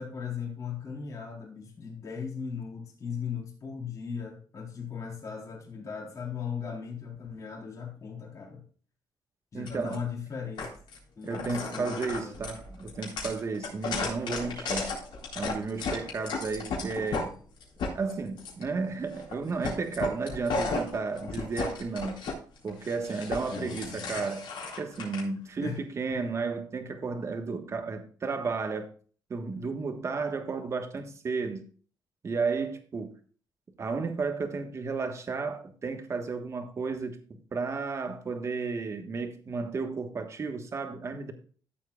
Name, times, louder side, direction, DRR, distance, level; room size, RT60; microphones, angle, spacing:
voice 1, 0.0-8.6 9.5-10.7 11.1-12.3 23.5-24.2 25.6-25.8, left 6 dB, 40° left, 3.9 m, -38 dB
voice 2, 9.5-10.0 11.2-15.0 15.3-17.4 17.9-22.2 22.6-24.5 24.8-28.9 29.3-31.6 32.2-33.1 33.8-37.2 37.5-41.3, right 4 dB, 35° right, 1.3 m, -33 dB
sound 1, 9.7-10.0 10.6-11.0 11.3-17.3 17.6-18.6 19.1-19.4 19.6-22.3 22.7-25.2, left 4 dB, 80° left, 3.9 m, -34 dB
14.0 x 7.6 x 2.4 m
cardioid pair, 140°, 8 cm